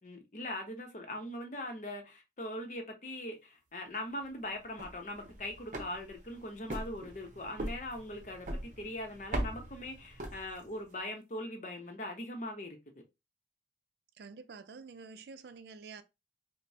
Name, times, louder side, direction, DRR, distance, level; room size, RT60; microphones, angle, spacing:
voice 1, 0.0-13.0, left 1 dB, 45° left, 0.8 m, -41 dB
sound 1, 4.6-10.9, right 1 dB, 45° right, 0.7 m, -41 dB
voice 2, 14.2-16.0, right 5 dB, 70° right, 0.4 m, -48 dB
5.1 x 2.1 x 2.7 m
head